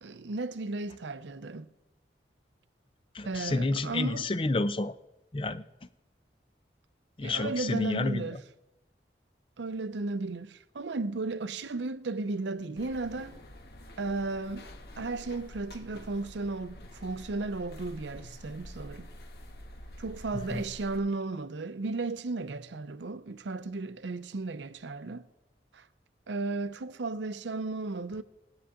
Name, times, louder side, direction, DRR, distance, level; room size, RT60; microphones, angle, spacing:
voice 1, 0.0-1.7 3.2-4.3 7.2-8.4 9.6-13.4 14.0-14.7 15.0-19.1 20.0-25.3 25.7-25.9 26.3-28.2, right 3 dB, 85° right, 0.6 m, -35 dB
voice 2, 3.1-4.9 5.3-5.6 7.2-8.4 20.5-20.6, left 2 dB, 30° left, 0.5 m, -30 dB
sound 1, 12.8-21.0, left 1 dB, 60° left, 1.3 m, -47 dB
19.0 x 9.6 x 3.7 m
head